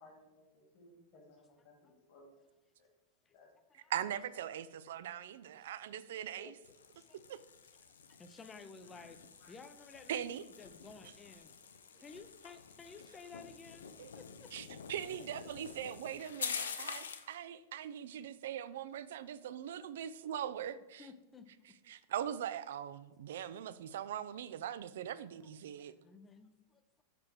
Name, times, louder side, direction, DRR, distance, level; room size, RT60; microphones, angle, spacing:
voice 1, 0.0-2.4 2.8-2.9 3.3-3.5 4.0-4.1 5.3-5.4 8.9-9.1 9.4-9.6, left 2 dB, 45° left, 2.0 m, -61 dB
voice 2, 3.7-6.5 7.3-7.4 10.1-10.4 14.0-14.1 14.5-21.1 21.9-25.9, right 10 dB, 60° right, 0.3 m, -41 dB
sound 1, 6.6-17.3, left 6 dB, 65° left, 0.5 m, -47 dB
voice 3, 7.8-11.5 11.9-14.5 16.8-17.1 20.7-21.8 25.8-27.0, left 4 dB, 20° left, 0.6 m, -55 dB
6.7 x 4.7 x 4.6 m
figure-of-eight pair, 90°, 0 cm